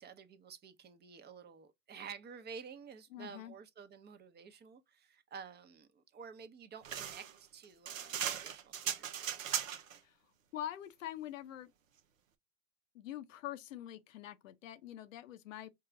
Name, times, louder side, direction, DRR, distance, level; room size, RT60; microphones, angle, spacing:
voice 1, 0.0-9.6, right 6 dB, 25° right, 0.8 m, -51 dB
voice 2, 3.1-3.5 10.0-10.2 10.5-11.7 12.9-15.7, left 12 dB, 80° left, 0.7 m, -45 dB
sound 1, 6.8-10.0, right 9 dB, 90° right, 0.7 m, -38 dB
4.7 x 2.4 x 3.7 m
hypercardioid pair, 90°, 38 cm